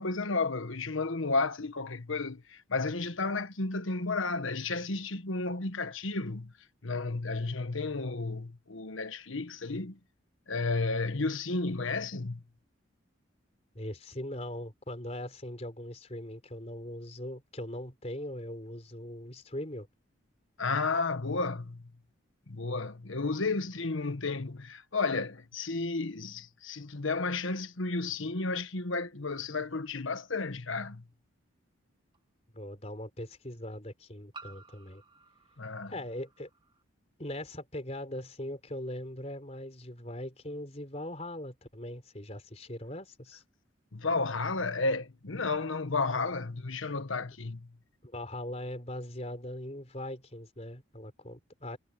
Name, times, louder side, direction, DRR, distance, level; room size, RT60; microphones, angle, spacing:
voice 1, 0.0-6.5 6.8-10.0 10.5-12.4 20.6-21.9 22.5-31.0 35.6-35.9 43.9-47.7, left 3 dB, 80° left, 1.3 m, -32 dB
voice 2, 13.7-19.9 32.5-35.0 35.9-36.5 37.2-43.4 48.0-51.8, left 1 dB, 30° left, 4.1 m, -40 dB
sound 1, 30.4-30.5 32.1-32.2 34.3-36.8, right 3 dB, 25° right, 1.9 m, -53 dB
head